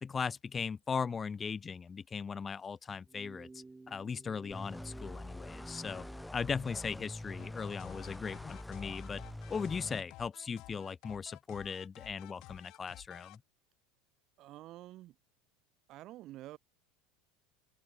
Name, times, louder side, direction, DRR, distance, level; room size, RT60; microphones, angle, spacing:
voice 1, 0.0-6.0 6.3-9.2 9.5-13.4, left 6 dB, 25° left, 0.4 m, -38 dB
sound 1, 3.1-6.3, right 3 dB, 15° right, 3.5 m, -53 dB
sound 2, 4.5-10.0, left 1 dB, 5° left, 3.7 m, -45 dB
sound 3, 7.4-13.4, left 20 dB, 60° left, 4.0 m, -53 dB
voice 2, 14.4-15.2 15.9-16.6, right 15 dB, 50° right, 3.9 m, -48 dB
open air
hypercardioid pair, 90°, 0 cm